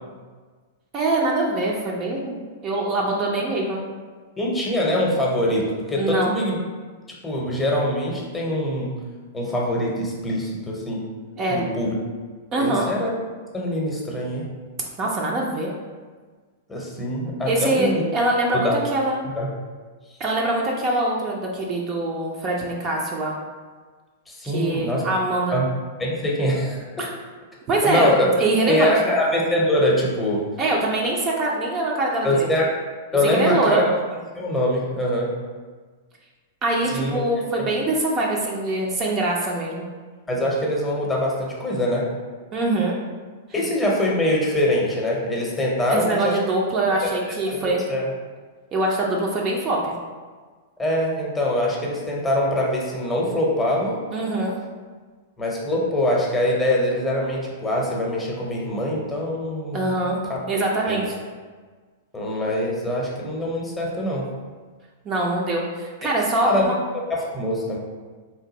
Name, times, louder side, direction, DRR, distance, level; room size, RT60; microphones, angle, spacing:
voice 1, 0.9-3.8 6.0-6.3 11.4-11.6 12.5-12.9 15.0-15.7 17.4-19.2 20.2-23.3 24.4-25.6 27.0-27.1 27.7-29.1 30.6-32.3 33.3-33.8 36.6-39.9 42.5-43.0 45.9-47.8 48.7-49.9 54.1-54.6 59.7-60.2 60.5-61.1 65.0-66.7, right 2 dB, 30° right, -2 dB, 0.5 m, -23 dB
voice 2, 4.4-6.6 7.2-8.9 9.3-11.0 11.5-11.9 12.6-13.1 13.5-14.5 16.7-18.0 18.5-18.7 19.3-19.5 24.3-25.1 25.5-25.7 26.0-26.8 27.8-28.3 28.7-30.4 32.2-32.7 33.1-33.9 34.3-35.3 36.9-37.2 37.6-37.7 40.3-42.1 43.5-46.4 46.9-47.0 47.5-48.1 50.8-54.0 55.4-59.9 60.3-60.4 60.9-61.0 62.1-64.2 66.4-66.7 67.1-67.8, left 1 dB, 10° left, -3 dB, 0.8 m, -23 dB
3.3 x 2.6 x 3.9 m, 1.5 s
figure-of-eight pair, 100°, 0 cm